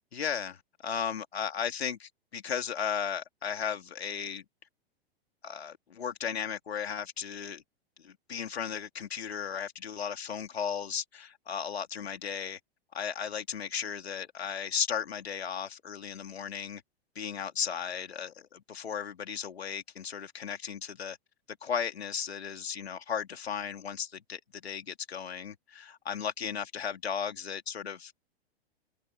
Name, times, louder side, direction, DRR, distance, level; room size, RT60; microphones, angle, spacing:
voice 1, 0.1-4.4 5.4-7.6 8.0-12.6 12.9-16.8 17.1-21.2 21.5-28.1, left 7 dB, 80° left, 3.4 m, -35 dB
open air
hypercardioid pair, 105°, 31 cm